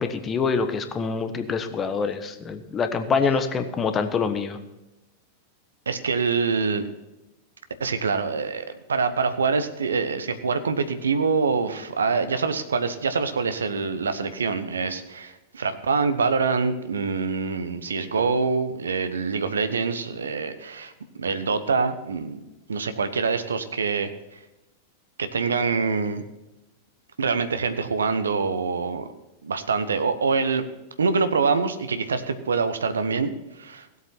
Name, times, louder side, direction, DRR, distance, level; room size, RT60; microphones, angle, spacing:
voice 1, 0.0-4.6, left 5 dB, 25° left, 8 dB, 1.2 m, -25 dB
voice 2, 5.9-6.8 7.8-20.9 21.2-22.4 22.7-24.1 25.2-26.2 27.2-29.1 29.4-30.6 31.0-33.3 33.6-33.9, right 4 dB, 75° right, 10 dB, 1.0 m, -25 dB
17.0 x 8.2 x 4.5 m, 0.99 s
figure-of-eight pair, 90°, 0 cm